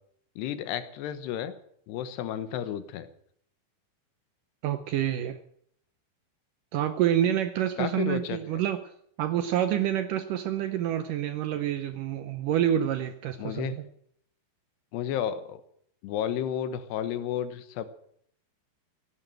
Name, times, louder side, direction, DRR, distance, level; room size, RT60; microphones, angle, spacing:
voice 1, 0.4-1.5 1.9-3.1 7.8-8.4 13.4-13.8 14.9-15.6 16.0-17.9, left 10 dB, 90° left, 12 dB, 3.3 m, -32 dB
voice 2, 4.6-5.4 6.7-8.8 9.2-13.9, right 11 dB, 75° right, 10 dB, 2.0 m, -27 dB
16.0 x 11.0 x 7.7 m, 0.66 s
omnidirectional pair, 4.6 m